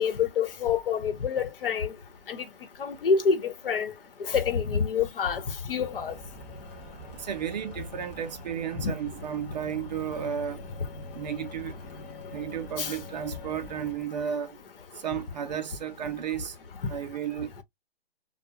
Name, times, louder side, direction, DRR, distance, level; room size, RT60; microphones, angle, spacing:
voice 1, 0.0-1.9 2.3-2.4 2.8-3.9 4.3-5.4 5.7-6.1 8.8-8.9 12.8-12.9, left 6 dB, 65° left, 0.9 m, -27 dB
sound 1, 5.8-13.9, left 1 dB, 15° left, 0.4 m, -44 dB
voice 2, 7.2-10.6 11.1-11.8 12.3-14.6 15.0-16.6 16.9-17.6, right 8 dB, 45° right, 0.5 m, -33 dB
2.3 x 2.2 x 2.7 m
hypercardioid pair, 150°, 30 cm